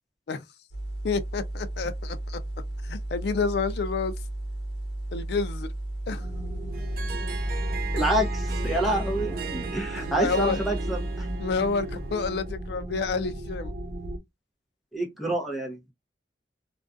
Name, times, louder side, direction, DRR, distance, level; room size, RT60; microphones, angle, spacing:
sound 1, 0.7-11.4, right 1 dB, 85° left, 0.9 m, -34 dB
voice 1, 1.0-2.4 2.8-4.1 5.1-5.7 6.1-6.3 10.0-10.6 11.4-13.7, left 4 dB, 65° left, 0.4 m, -29 dB
sound 2, 6.2-14.2, right 1 dB, 80° right, 0.8 m, -35 dB
Harp, 6.7-12.5, right 7 dB, 50° right, 0.4 m, -39 dB
voice 2, 7.9-11.3 14.9-15.9, right 1 dB, ahead, 0.7 m, -28 dB
2.5 x 2.2 x 2.4 m
head